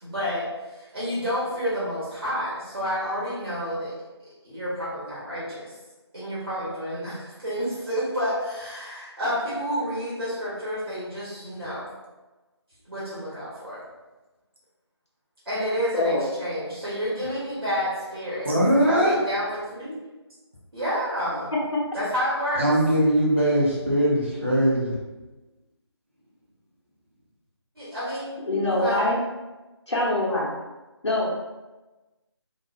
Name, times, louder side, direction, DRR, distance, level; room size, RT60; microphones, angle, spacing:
voice 1, 0.0-3.9 4.4-5.7 6.1-11.9 12.9-13.8 15.4-20.0 20.7-21.5 21.9-22.6 27.8-28.4 28.8-29.1, equal, 55° right, -9 dB, 1.0 m, -29 dB
voice 2, 18.4-19.2 22.6-25.0, right 1 dB, 25° right, -6 dB, 0.5 m, -21 dB
voice 3, 28.4-29.2 29.9-30.5 31.0-31.3, left 1 dB, 80° left, -6 dB, 0.7 m, -24 dB
2.4 x 2.1 x 2.4 m, 1.1 s
figure-of-eight pair, 160°, 15 cm